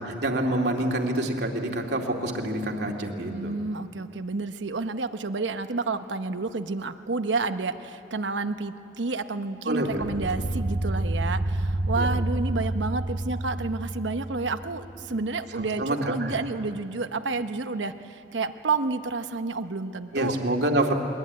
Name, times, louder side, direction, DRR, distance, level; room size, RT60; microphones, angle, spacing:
voice 1, 0.0-3.5 9.6-10.1 12.0-12.1 15.5-16.4 20.1-20.9, right 1 dB, 65° right, 1 dB, 2.4 m, -27 dB
voice 2, 3.3-20.4, right 3 dB, 85° right, 9 dB, 1.0 m, -30 dB
sound 1, 9.9-15.2, right 1 dB, 45° right, 0.5 m, -29 dB
22.0 x 21.0 x 9.5 m, 2.7 s
head